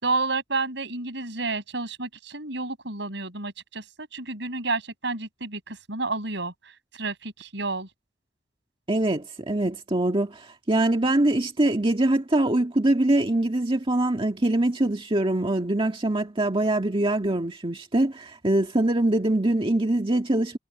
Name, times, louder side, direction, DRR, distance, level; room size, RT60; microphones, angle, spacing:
voice 1, 0.0-6.5 6.9-7.9, right 3 dB, 70° right, 6.5 m, -30 dB
voice 2, 8.9-20.6, right 1 dB, 30° right, 1.9 m, -23 dB
head